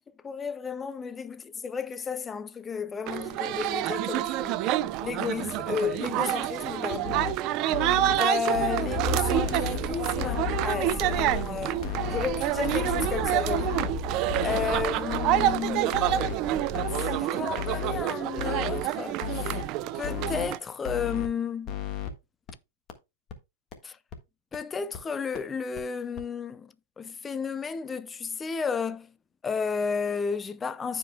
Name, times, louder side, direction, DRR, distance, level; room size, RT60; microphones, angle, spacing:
voice 1, 0.2-4.7 5.0-7.1 8.1-11.8 12.1-13.8 14.4-16.0 16.9-19.5 19.9-21.8 23.8-24.0 24.5-29.1 29.4-31.0, left 6 dB, 15° left, 0.5 m, -32 dB
sound 1, 3.1-20.6, right 13 dB, 35° right, 0.5 m, -28 dB
sound 2, 6.9-7.3 7.7-8.1 8.5-9.0 9.4-9.8 10.2-10.6 11.0-11.4 11.8-12.2 12.6-13.1 13.5-13.9 14.3-14.7 15.1-15.5 15.9-16.3 16.7-17.2 17.6-18.0 18.4-18.8 19.2-19.6 20.0-20.5 20.8-21.3 21.7-22.1 22.5-22.6 22.9-23.0 23.3-23.4 23.7-23.8 24.1-24.2 24.5-24.6 24.9-25.0 25.3-25.4 25.8-25.9 26.2-26.3, left 11 dB, 30° left, 1.5 m, -34 dB
sound 3, 8.9-17.0, left 2 dB, 10° right, 1.0 m, -36 dB
14.5 x 5.1 x 2.2 m
hypercardioid pair, 145°, 0 cm